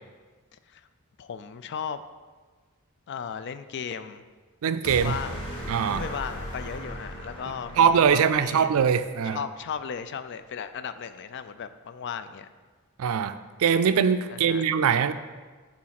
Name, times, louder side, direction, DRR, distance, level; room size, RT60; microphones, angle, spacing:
voice 1, 1.2-2.0 3.1-4.2 5.0-5.4 5.9-8.7 9.2-12.5 14.3-14.6, left 7 dB, 55° left, 12 dB, 0.4 m, -36 dB
voice 2, 4.6-5.2 5.7-6.0 7.8-9.4 13.0-15.1, right 7 dB, 70° right, 12 dB, 0.4 m, -22 dB
sound 1, 4.8-9.1, equal, 25° left, 1.9 m, -37 dB
6.2 x 4.3 x 5.8 m, 1.4 s
head